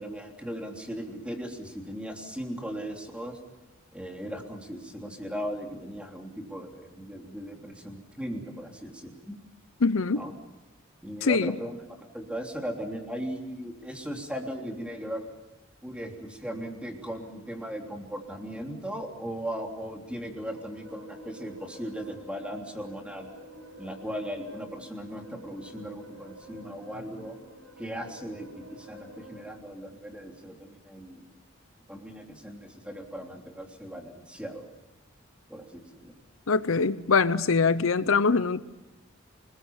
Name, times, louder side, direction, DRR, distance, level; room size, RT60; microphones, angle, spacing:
voice 1, 0.0-3.4 3.9-9.4 10.1-10.3 11.0-11.8 12.1-15.3 15.8-23.3 23.8-27.3 27.8-31.2 31.9-34.7 35.5-36.1, equal, 5° right, 2 dB, 3.3 m, -38 dB
voice 2, 9.8-10.3 11.2-11.5 36.5-38.6, left 4 dB, 80° left, 14 dB, 0.8 m, -23 dB
sound 1, 20.2-29.5, equal, 90° right, 5.8 m, -49 dB
28.0 x 20.5 x 7.3 m, 0.97 s
head